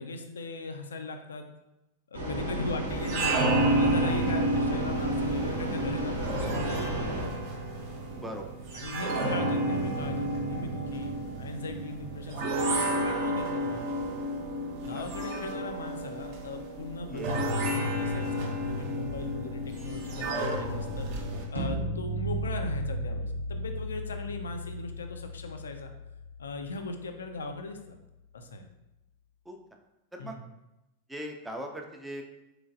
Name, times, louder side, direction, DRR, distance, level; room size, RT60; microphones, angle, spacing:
voice 1, 0.0-1.5 2.1-7.4 8.7-14.0 14.8-25.9 26.4-28.0 28.3-28.7 30.2-30.4, left 3 dB, 70° left, 6 dB, 0.4 m, -39 dB
sound 1, 2.1-7.3, right 1 dB, 80° right, 0.8 m, -34 dB
sound 2, 2.9-21.4, right 1 dB, 45° right, 0.7 m, -31 dB
voice 2, 8.1-8.5 14.9-15.0 17.1-17.4 29.5-29.6 30.1-30.4 31.1-32.2, equal, 5° right, 2 dB, 0.4 m, -39 dB
sound 3, 21.6-27.5, right 1 dB, 90° left, 0.8 m, -35 dB
3.8 x 3.1 x 2.5 m, 0.94 s
figure-of-eight pair, 90°, 0 cm